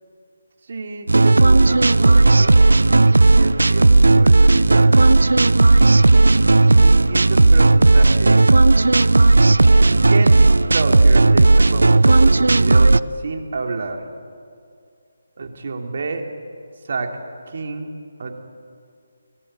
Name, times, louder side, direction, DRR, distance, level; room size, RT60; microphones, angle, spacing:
voice 1, 0.6-2.6 3.3-5.1 6.7-8.6 10.1-14.1 15.4-16.2 16.8-17.1 17.5-17.9 18.2-18.4, right 3 dB, 50° right, 4 dB, 2.8 m, -29 dB
sound 1, 1.1-13.0, right 2 dB, 70° right, 0.5 m, -13 dB
24.0 x 19.0 x 9.2 m, 2.3 s
figure-of-eight pair, 150°, 0 cm